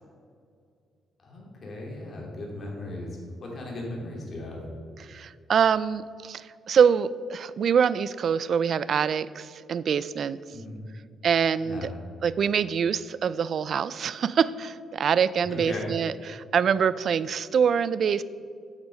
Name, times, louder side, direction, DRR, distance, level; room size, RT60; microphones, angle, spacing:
voice 1, 1.2-4.6 10.5-10.8 11.6-11.9 15.4-15.9, left 1 dB, 40° left, -2 dB, 2.7 m, -37 dB
voice 2, 5.0-10.4 11.2-11.9 12.2-18.2, right 7 dB, 50° right, 17 dB, 0.3 m, -25 dB
8.2 x 8.1 x 5.4 m, 2.3 s
cardioid pair, 125°, 0 cm